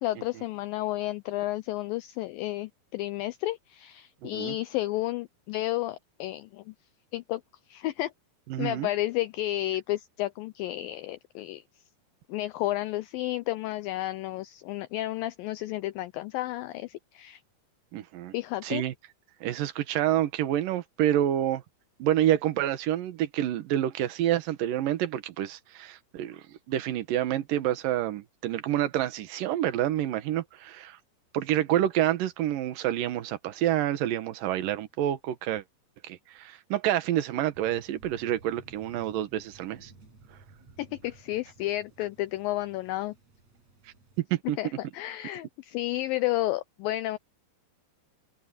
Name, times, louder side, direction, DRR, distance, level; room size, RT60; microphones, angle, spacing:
voice 1, 0.0-6.7 7.1-7.4 7.7-8.1 8.6-11.6 12.3-17.4 18.3-18.8 40.8-43.1 44.6-47.2, left 16 dB, 90° left, 2.0 m, -32 dB
voice 2, 4.2-4.5 8.5-8.9 17.9-18.3 18.6-18.9 19.4-21.6 22.0-26.4 26.7-31.0 31.3-35.6 36.0-39.9 44.3-44.6, right 12 dB, 65° right, 2.7 m, -28 dB
Thunder, 37.5-44.2, right 3 dB, 40° right, 7.0 m, -55 dB
open air
omnidirectional pair, 4.7 m